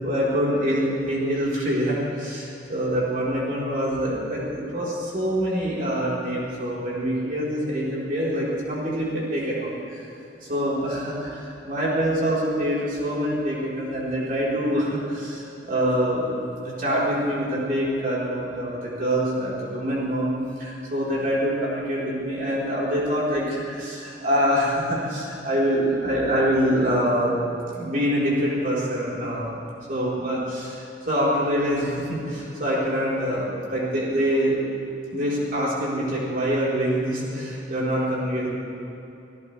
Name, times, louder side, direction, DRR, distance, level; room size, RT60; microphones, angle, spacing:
voice 1, 0.0-10.0 10.4-16.3 16.6-20.3 20.6-27.4 27.7-34.6 35.1-38.5, equal, 50° right, -7 dB, 4.2 m, -25 dB
27.0 x 14.5 x 3.4 m, 2.9 s
head